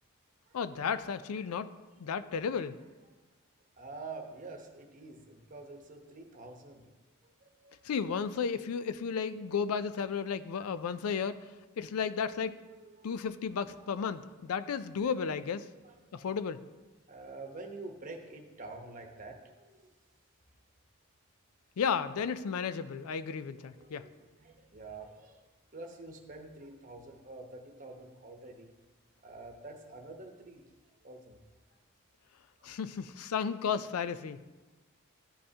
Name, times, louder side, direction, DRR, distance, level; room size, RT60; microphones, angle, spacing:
voice 1, 0.5-1.7 2.0-2.8 7.8-11.4 11.8-12.6 13.0-15.7 16.1-16.6 21.8-24.1 32.6-34.4, left 6 dB, 85° left, 13 dB, 0.4 m, -33 dB
voice 2, 3.8-6.9 7.2-7.8 11.0-11.1 12.8-13.1 14.7-14.8 15.8-16.3 17.1-19.9 23.5-25.4 25.7-28.7 29.2-30.6 31.0-31.4 32.6-32.7, right 3 dB, 35° right, 2 dB, 0.9 m, -47 dB
13.5 x 5.4 x 2.8 m, 1.2 s
head